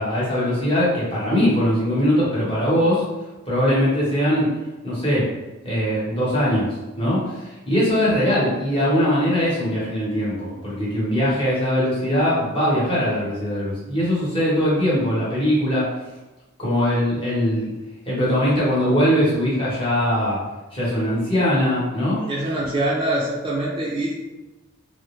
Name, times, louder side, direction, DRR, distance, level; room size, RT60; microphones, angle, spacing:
voice 1, 0.0-3.0 3.5-4.5 4.8-5.3 5.6-6.7 7.0-15.9 16.6-17.7 18.1-20.4 20.7-22.2, equal, 25° left, -7 dB, 0.9 m, -21 dB
voice 2, 22.2-24.1, right 1 dB, 25° right, -5 dB, 0.4 m, -24 dB
2.4 x 2.0 x 3.0 m, 1.1 s
head